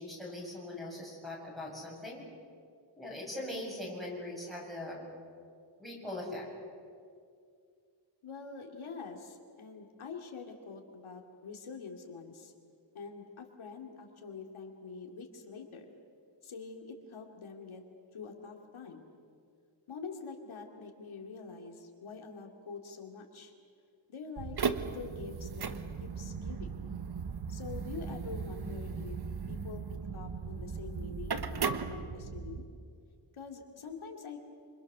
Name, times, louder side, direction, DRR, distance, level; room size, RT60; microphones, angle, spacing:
voice 1, 0.0-2.2 3.0-5.0 5.8-6.5, left 1 dB, ahead, -4 dB, 7.4 m, -41 dB
voice 2, 8.2-12.5 12.9-15.9 16.4-17.8 18.1-19.0 19.9-23.5 24.1-25.7 26.0-26.7 27.5-29.2 29.5-29.8 30.1-32.6 33.3-34.4, left 5 dB, 85° left, 2 dB, 2.7 m, -45 dB
sound 1, 24.4-32.6, right 5 dB, 55° right, 1.2 m, -37 dB
27.0 x 27.0 x 6.8 m, 2.3 s
wide cardioid pair, 165°, 47 cm